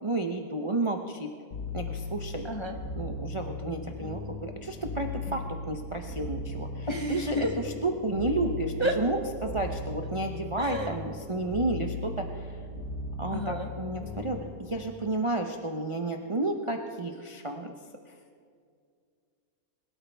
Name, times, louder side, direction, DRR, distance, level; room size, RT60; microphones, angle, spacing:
voice 1, 0.0-1.3 1.7-2.4 3.0-12.6 13.2-17.7, right 2 dB, 35° right, 3 dB, 0.5 m, -32 dB
sound 1, 1.5-14.8, left 3 dB, 70° left, 1.9 m, -38 dB
voice 2, 2.4-2.8 5.3-5.4 6.9-7.7 8.8-8.9 10.6-10.9 13.3-13.7, equal, 25° left, 2 dB, 0.7 m, -31 dB
22.0 x 12.5 x 3.4 m, 2.2 s
omnidirectional pair, 1.6 m